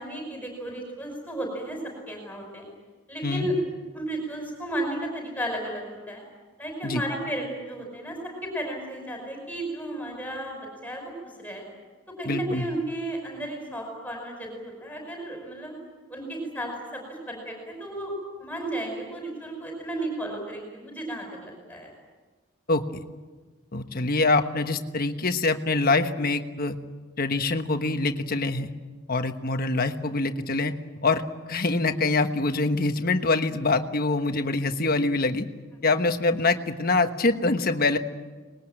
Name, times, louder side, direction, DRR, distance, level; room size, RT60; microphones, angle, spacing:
voice 1, 0.0-2.7 3.1-3.6 3.9-6.2 6.6-11.1 11.4-11.6 12.2-15.8 16.1-21.9, right 1 dB, 5° left, 1 dB, 5.5 m, -34 dB
voice 2, 12.2-12.6 22.7-22.8 23.7-26.8 27.2-28.7 29.1-30.7 31.0-31.2 31.5-35.4 35.8-38.0, left 3 dB, 45° left, 7 dB, 1.3 m, -24 dB
25.0 x 21.0 x 8.9 m, 1.3 s
head